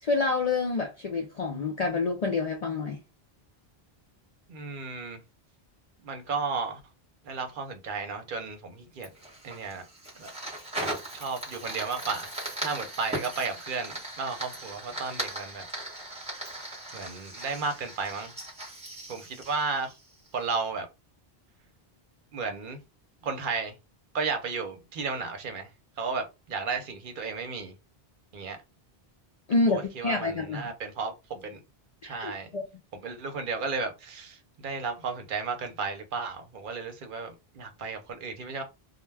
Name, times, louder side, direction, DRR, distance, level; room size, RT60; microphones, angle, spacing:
voice 1, 0.0-3.0 29.5-30.7 32.0-32.7, left 3 dB, 55° left, 0.5 m, -28 dB
voice 2, 4.5-5.2 6.0-6.8 7.2-9.1 9.4-9.8 10.2-10.3 11.1-12.3 12.6-15.7 16.9-18.3 19.1-19.9 20.3-20.9 22.3-22.8 23.2-23.7 24.1-25.7 26.0-27.7 28.3-28.6 29.7-31.6 32.0-32.5 32.9-38.6, right 4 dB, 60° right, 0.7 m, -33 dB
Fire, 9.0-20.4, right 1 dB, 5° right, 0.9 m, -38 dB
2.2 x 2.1 x 3.2 m
omnidirectional pair, 1.1 m